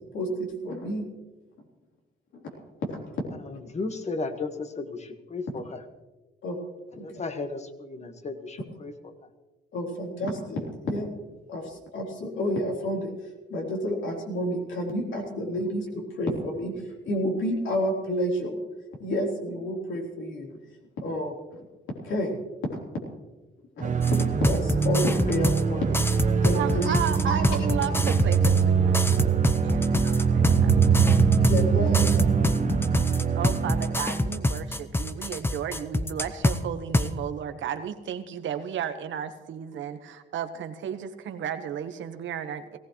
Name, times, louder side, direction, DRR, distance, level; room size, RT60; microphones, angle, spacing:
voice 1, 0.1-1.0 2.3-2.4 2.8-3.2 6.4-6.6 6.9-7.0 9.7-11.1 11.5-13.1 13.5-16.7 17.1-18.6 19.0-20.5 21.0-21.6 22.0-22.4 23.8-27.0 27.3-27.4 31.5-32.3 32.6-32.7, equal, 70° left, -1 dB, 3.8 m, -30 dB
voice 2, 3.4-5.8 7.0-9.1, left 3 dB, 35° left, 8 dB, 1.6 m, -35 dB
sound 1, 23.8-34.6, right 6 dB, 40° right, 1.1 m, -23 dB
sound 2, 24.0-25.6 25.9-28.6 28.9-31.6 31.9-36.6 36.9-37.1, left 1 dB, 10° left, 0.8 m, -26 dB
voice 3, 26.3-29.2 29.6-31.2 31.8-31.9 33.3-42.8, right 9 dB, 75° right, 9 dB, 1.2 m, -34 dB
18.0 x 16.5 x 3.2 m, 1.2 s
cardioid pair, 90°, 20 cm